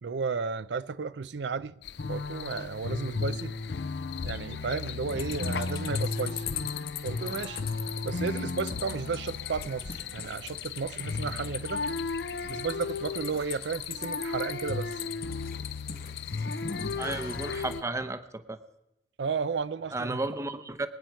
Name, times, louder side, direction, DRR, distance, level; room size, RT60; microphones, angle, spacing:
voice 1, 0.0-1.7 2.1-3.5 4.2-6.7 7.0-7.6 8.0-11.8 12.5-15.0 19.2-20.2, right 5 dB, 85° right, 0.5 m, -33 dB
sound 1, 1.8-17.8, left 4 dB, 75° left, 0.7 m, -35 dB
sound 2, 5.1-17.8, left 8 dB, 55° left, 1.1 m, -41 dB
voice 2, 17.0-18.6 19.9-20.9, right 2 dB, 15° right, 0.7 m, -33 dB
23.5 x 9.2 x 4.6 m
head